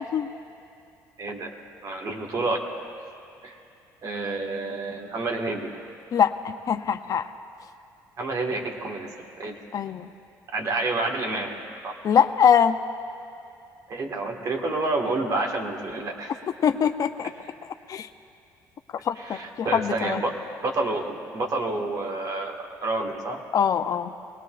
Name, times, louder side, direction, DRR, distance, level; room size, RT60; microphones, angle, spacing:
voice 1, 1.2-1.5 1.8-2.7 3.4-3.6 4.0-5.7 8.2-9.6 10.5-11.6 11.8-12.0 13.9-16.4 19.2-20.3 20.6-23.4, right 2 dB, 50° right, 1 dB, 1.8 m, -29 dB
voice 2, 6.7-7.3 9.7-10.1 12.0-12.8 16.6-17.3 17.9-18.1 19.0-20.2 23.5-24.1, left 8 dB, 50° left, 9 dB, 0.6 m, -22 dB
21.5 x 18.5 x 2.5 m, 2.6 s
supercardioid pair, 80°, 8 cm